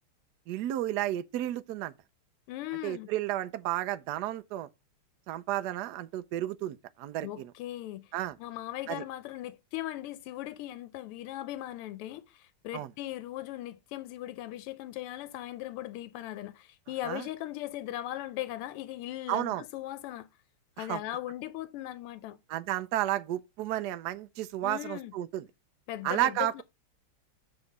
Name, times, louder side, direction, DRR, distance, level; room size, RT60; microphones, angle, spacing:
voice 1, 0.5-1.9 2.8-4.7 5.3-7.5 8.1-8.4 8.9-9.0 12.7-12.9 17.0-17.3 19.3-19.6 20.8-21.0 22.5-25.5 26.0-26.5, right 14 dB, 80° right, 0.9 m, -32 dB
voice 2, 2.5-3.1 7.2-8.1 8.4-20.3 20.8-22.4 24.6-25.1 25.9-26.6, left 14 dB, 85° left, 1.5 m, -38 dB
7.1 x 3.9 x 6.5 m
omnidirectional pair, 2.4 m